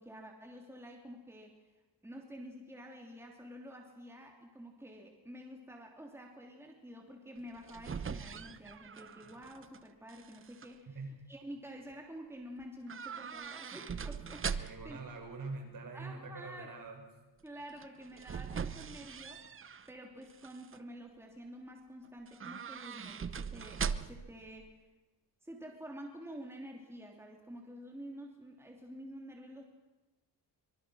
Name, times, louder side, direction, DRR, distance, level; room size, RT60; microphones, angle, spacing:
voice 1, 0.0-1.6 2.0-11.0 11.3-15.0 15.9-16.7 17.4-19.4 19.9-24.8 25.4-29.6, equal, 5° right, 1 dB, 3.1 m, -49 dB
sound 1, 7.4-9.8 10.1-10.7 12.9-15.0 17.8-19.9 20.3-20.8 22.3-24.4 24.6-24.7, right 6 dB, 30° right, 0.9 m, -41 dB
voice 2, 14.6-17.1, right 3 dB, 50° right, 3 dB, 6.1 m, -44 dB
25.0 x 23.5 x 6.4 m, 1.1 s
cardioid pair, 125°, 42 cm